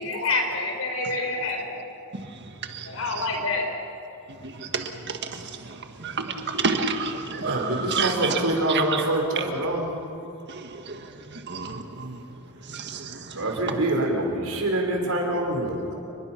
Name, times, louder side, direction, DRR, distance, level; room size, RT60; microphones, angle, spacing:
voice 1, 0.0-1.8 2.8-3.7, left 3 dB, 70° left, 4.6 m, -27 dB
voice 2, 4.4-9.1 9.3-9.5 10.5-11.0 11.3-12.2 12.7-13.8, right 5 dB, 50° right, 1.8 m, -30 dB
voice 3, 7.4-9.9 13.4-15.9, right 1 dB, 90° right, 4.8 m, -25 dB
29.5 x 21.0 x 6.0 m
head